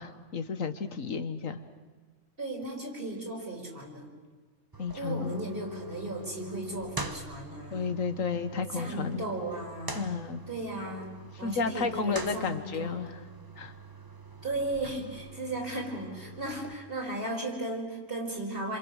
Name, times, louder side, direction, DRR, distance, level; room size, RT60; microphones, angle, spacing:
voice 1, 0.0-1.6 4.8-5.4 7.7-9.2 9.9-10.4 11.4-13.2 13.6-13.7, left 5 dB, 85° left, 9 dB, 1.8 m, -32 dB
voice 2, 2.4-4.1 5.0-7.9 8.7-10.1 10.5-11.1 11.4-13.0 14.4-18.8, right 1 dB, 45° right, -1 dB, 5.5 m, -36 dB
sound 1, 4.7-16.7, right 3 dB, 15° right, 1.3 m, -44 dB
28.0 x 27.0 x 6.5 m, 1.4 s
omnidirectional pair, 1.3 m